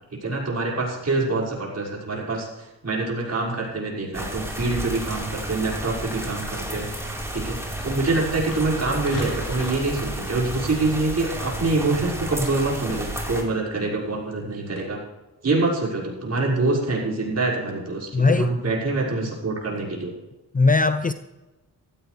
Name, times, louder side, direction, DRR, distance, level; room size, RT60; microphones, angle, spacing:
voice 1, 0.2-7.6 7.8-15.0 15.4-20.1, right 3 dB, 40° right, 5.9 m, -25 dB
sound 1, 4.1-13.4, right 1 dB, 5° right, 4.2 m, -32 dB
sound 2, 6.9-14.8, left 1 dB, 55° left, 4.8 m, -41 dB
voice 2, 18.1-18.5 20.5-21.1, left 3 dB, 20° left, 0.7 m, -19 dB
15.5 x 15.0 x 3.4 m
cardioid pair, 65°, 38 cm